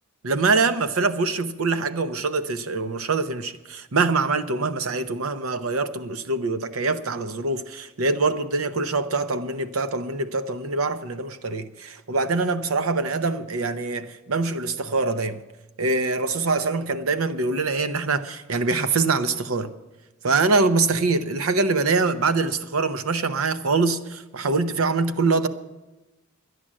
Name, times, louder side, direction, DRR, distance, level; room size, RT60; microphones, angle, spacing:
voice 1, 0.2-15.4 15.8-19.7 20.2-25.5, right 3 dB, 85° right, 0.8 m, -24 dB
11.0 x 10.0 x 7.5 m
head